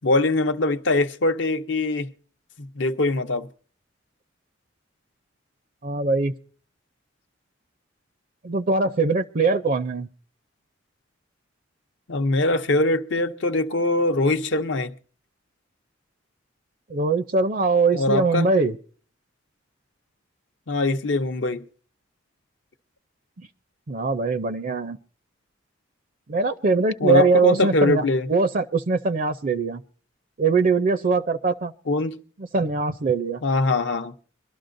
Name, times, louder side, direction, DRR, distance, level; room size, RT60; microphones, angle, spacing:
voice 1, 0.0-2.1 2.6-3.5 12.1-14.9 17.9-18.5 20.7-21.6 27.0-28.3 31.9-32.1 33.4-34.1, left 2 dB, 65° left, 0.7 m, -22 dB
voice 2, 5.8-6.3 8.4-10.1 16.9-18.8 23.4-23.5 23.9-25.0 26.3-28.0 28.3-29.8 30.4-31.7 32.5-33.4, right 3 dB, 45° right, 0.5 m, -22 dB
24.0 x 12.5 x 2.6 m
head